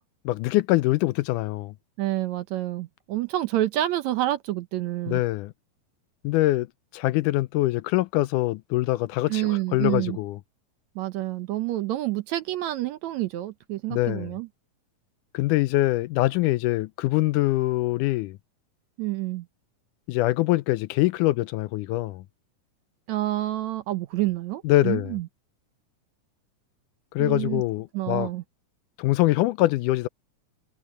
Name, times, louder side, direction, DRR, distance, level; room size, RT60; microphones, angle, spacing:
voice 1, 0.3-1.7 5.1-5.5 6.2-6.7 6.9-10.4 13.9-14.3 15.3-18.4 20.1-22.2 24.6-25.1 27.1-28.3 29.0-30.1, left 17 dB, 80° left, 2.0 m, -24 dB
voice 2, 2.0-5.2 9.3-10.2 11.0-14.5 19.0-19.5 23.1-25.3 27.2-27.6 27.9-28.4, right 15 dB, 70° right, 1.9 m, -28 dB
omnidirectional pair, 3.7 m